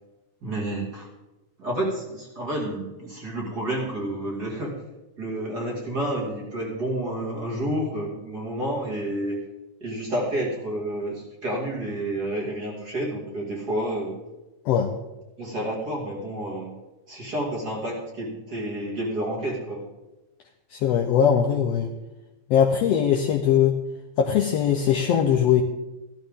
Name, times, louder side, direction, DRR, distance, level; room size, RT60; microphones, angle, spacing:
voice 1, 0.4-1.1 1.6-4.8 5.2-9.4 9.8-14.2 15.4-16.8 17.1-19.9, right 1 dB, 35° right, -2 dB, 2.5 m, -30 dB
voice 2, 20.7-21.9 22.5-23.8 24.2-25.6, left 8 dB, 75° left, 4 dB, 1.5 m, -20 dB
14.5 x 12.5 x 3.6 m, 1.0 s
omnidirectional pair, 3.6 m